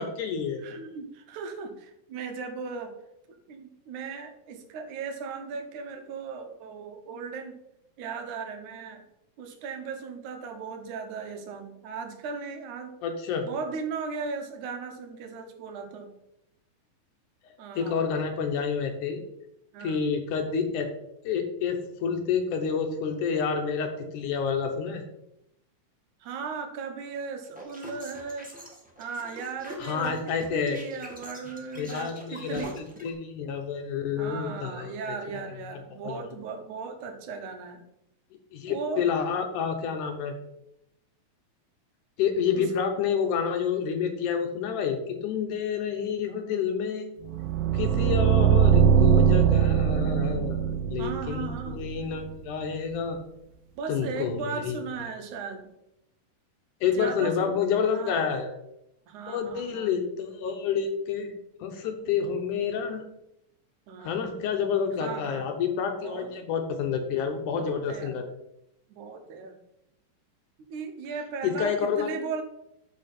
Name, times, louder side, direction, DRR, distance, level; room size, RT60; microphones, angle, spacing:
voice 1, 0.0-0.6 13.0-13.5 17.8-19.2 19.8-20.9 21.2-25.0 29.8-30.8 31.8-35.2 35.9-36.3 38.5-40.3 42.2-47.1 47.7-50.6 50.9-53.2 53.9-54.8 56.8-58.5 59.3-61.3 61.6-63.0 64.0-68.3 71.4-72.1, left 6 dB, 75° left, 5 dB, 2.3 m, -29 dB
voice 2, 0.6-2.9 3.5-7.6 8.0-9.0 9.4-12.9 13.5-16.1 17.6-18.1 19.7-20.0 26.2-28.5 29.0-32.8 34.2-37.8 38.7-39.2 39.5-39.6 42.5-42.7 51.0-51.8 53.7-55.7 56.9-57.6 57.9-58.3 59.1-60.0 63.9-64.2 65.0-65.5 66.0-66.3 67.4-68.2 68.9-69.6 70.7-72.4, right 5 dB, 70° right, 5 dB, 2.5 m, -37 dB
sound 1, 27.4-33.1, equal, 5° right, 1.0 m, -44 dB
sound 2, 47.3-52.2, right 8 dB, 85° right, 2.3 m, -22 dB
13.5 x 5.0 x 4.3 m, 0.84 s
omnidirectional pair, 3.8 m